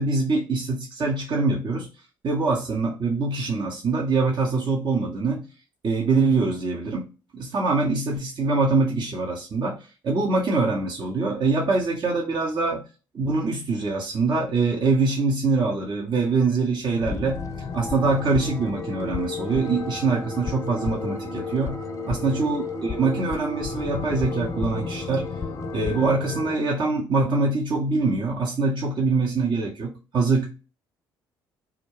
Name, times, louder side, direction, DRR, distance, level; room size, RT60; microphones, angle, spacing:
voice 1, 0.0-1.9 2.2-5.5 5.8-7.1 7.3-9.8 10.0-12.8 13.1-17.4 17.7-21.8 22.1-25.3 25.7-30.5, right 3 dB, 45° right, -2 dB, 0.8 m, -24 dB
sound 1, 16.9-26.6, left 4 dB, 25° left, 0.5 m, -32 dB
2.4 x 2.1 x 3.1 m, 0.33 s
hypercardioid pair, 55°, 11 cm